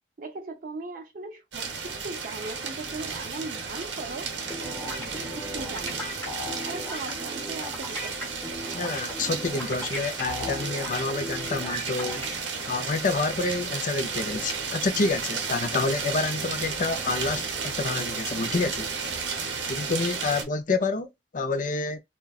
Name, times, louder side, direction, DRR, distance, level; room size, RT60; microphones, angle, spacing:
voice 1, 0.2-4.4 4.6-6.1 6.6-8.3 20.2-20.5, right 3 dB, 50° right, 0.5 m, -39 dB
sound 1, 1.5-20.4, right 5 dB, 80° right, 0.8 m, -33 dB
sound 2, 4.5-12.3, equal, 10° left, 1.0 m, -38 dB
sound 3, 6.3-6.7 10.3-10.7, left 4 dB, 75° left, 0.8 m, -36 dB
voice 2, 8.7-12.3 12.7-18.9 19.7-22.0, left 3 dB, 45° left, 0.5 m, -28 dB
3.7 x 2.2 x 2.4 m
head